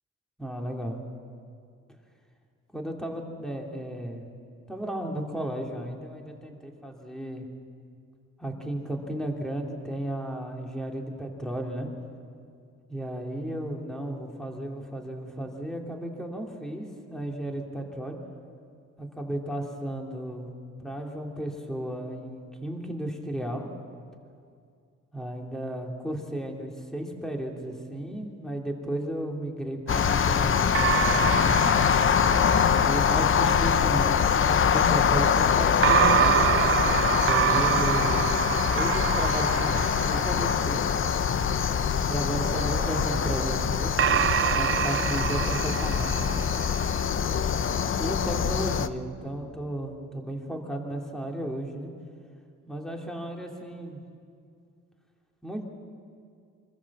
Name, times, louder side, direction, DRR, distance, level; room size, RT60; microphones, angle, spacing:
voice 1, 0.4-1.0 2.7-4.2 4.7-7.4 8.4-11.9 12.9-18.2 19.0-20.5 20.8-23.7 25.1-31.8 32.8-34.2 34.5-36.5 37.0-38.3 38.7-40.8 42.1-46.4 48.0-51.9 52.7-54.0 55.4-55.7, right 1 dB, ahead, 1 dB, 2.9 m, -34 dB
sound 1, 29.9-48.9, left 7 dB, 40° left, 0.8 m, -24 dB
sound 2, 29.9-33.3 35.8-41.3 42.4-47.0, right 11 dB, 45° right, 0.4 m, -27 dB
25.0 x 14.5 x 7.4 m, 2.3 s
cardioid pair, 90°, 30 cm